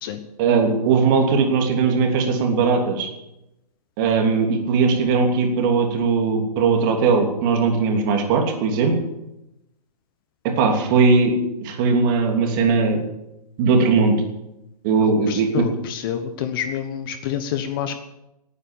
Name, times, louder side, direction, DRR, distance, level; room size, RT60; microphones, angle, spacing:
voice 1, 0.4-3.1 4.0-8.9 10.4-13.0 13.6-14.2 14.8-15.6, right 4 dB, 30° right, 3 dB, 3.0 m, -19 dB
voice 2, 15.0-18.0, left 9 dB, 35° left, 9 dB, 1.1 m, -28 dB
18.0 x 9.7 x 7.3 m, 0.91 s
hypercardioid pair, 150°, 21 cm